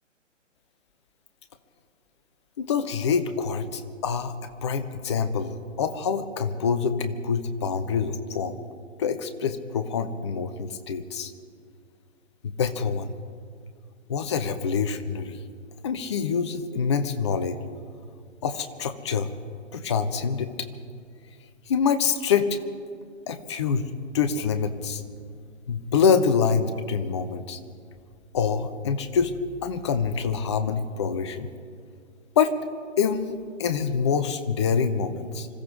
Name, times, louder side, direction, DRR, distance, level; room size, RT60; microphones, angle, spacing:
voice 1, 2.6-4.3 4.6-8.6 9.0-11.3 12.6-13.1 14.1-15.4 15.8-17.6 18.4-19.4 19.7-20.5 21.7-22.6 23.3-25.0 25.7-27.6 28.3-29.3 29.6-31.5 32.4-32.5 33.0-35.5, left 6 dB, 25° left, 10 dB, 0.6 m, -26 dB
26.0 x 14.0 x 3.7 m, 2.1 s
figure-of-eight pair, 130°, 38 cm